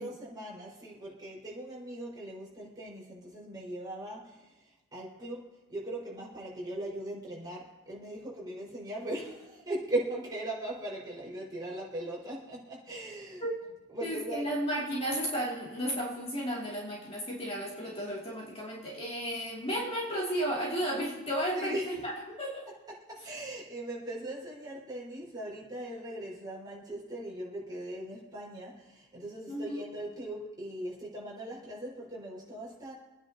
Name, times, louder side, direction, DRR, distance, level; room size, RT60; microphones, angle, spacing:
voice 1, 0.0-13.5 13.9-14.5 21.5-21.9 23.1-32.9, right 1 dB, 20° right, -6 dB, 4.9 m, -39 dB
voice 2, 14.0-22.7 29.5-29.8, equal, 25° left, -4 dB, 2.7 m, -33 dB
26.5 x 10.0 x 2.9 m, 1.1 s
head